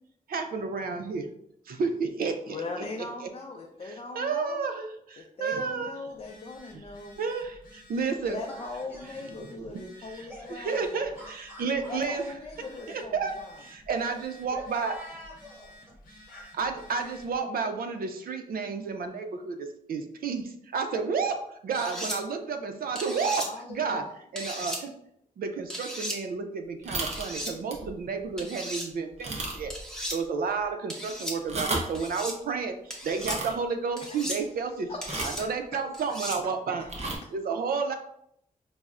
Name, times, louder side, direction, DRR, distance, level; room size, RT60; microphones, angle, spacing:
voice 1, 0.3-1.3 1.7-2.8 3.8-5.9 7.2-8.4 9.7-9.8 10.1-12.2 12.9-13.3 13.6-15.0 16.6-21.4 21.6-24.0 24.3-24.9 25.4-29.7 30.1-34.9 35.2-36.9 37.3-37.9, right 5 dB, 85° right, 6 dB, 0.5 m, -31 dB
voice 2, 2.5-4.7 5.2-7.2 8.3-11.2 11.9-13.6 23.4-24.1 34.1-34.5 34.9-35.5 37.2-37.3, left 3 dB, 40° left, 0 dB, 0.4 m, -40 dB
Telephone, 6.1-17.4, left 1 dB, 75° left, 0.8 m, -53 dB
voice 3, 8.2-9.1 10.1-10.8 11.2-11.9 14.5-16.6, equal, 15° right, -4 dB, 1.4 m, -46 dB
sound 1, 21.7-22.2 22.9-23.5 24.4-24.8 25.7-26.2 27.0-27.5 28.4-28.9 29.7-30.2 30.9-31.4 31.9-32.4 32.9-33.4 34.0-34.4 35.0-35.4 35.9-36.4, equal, 5° left, 0.7 m, -36 dB
sound 2, 26.8-27.3 27.7-27.9 28.3-28.4 29.2-29.8 30.1-30.2 31.3-32.0 33.1-33.5 35.0-35.4 36.8-37.2, right 2 dB, 45° right, 0.7 m, -33 dB
5.3 x 2.0 x 2.4 m, 0.72 s
wide cardioid pair, 125°, 15 cm